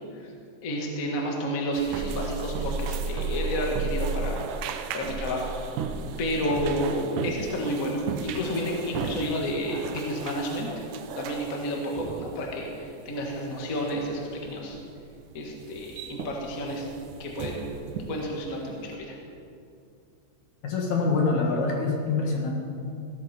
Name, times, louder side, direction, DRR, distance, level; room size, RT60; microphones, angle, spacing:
voice 1, 0.6-5.5 6.2-10.9 11.1-14.8 15.3-16.9 17.2-17.7 18.1-19.2, equal, 35° left, -1 dB, 1.7 m, -30 dB
sound 1, 1.7-18.9, right 4 dB, 80° right, 2.2 m, -35 dB
voice 2, 20.6-22.5, left 4 dB, 65° left, -1 dB, 3.2 m, -25 dB
16.5 x 13.5 x 4.4 m, 2.5 s
omnidirectional pair, 3.8 m